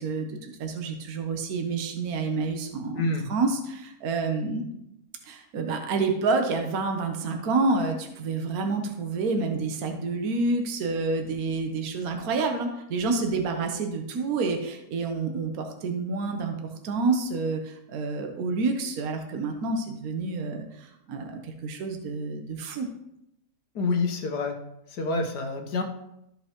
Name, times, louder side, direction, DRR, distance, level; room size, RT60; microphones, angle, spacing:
voice 1, 0.0-3.0 3.3-4.7 5.3-16.5 16.8-22.9, right 3 dB, 65° right, 4 dB, 1.4 m, -28 dB
voice 2, 2.9-3.3 23.7-24.6 24.9-25.8, left 3 dB, 75° left, 4 dB, 1.7 m, -27 dB
13.5 x 5.5 x 3.0 m, 0.81 s
omnidirectional pair, 1.8 m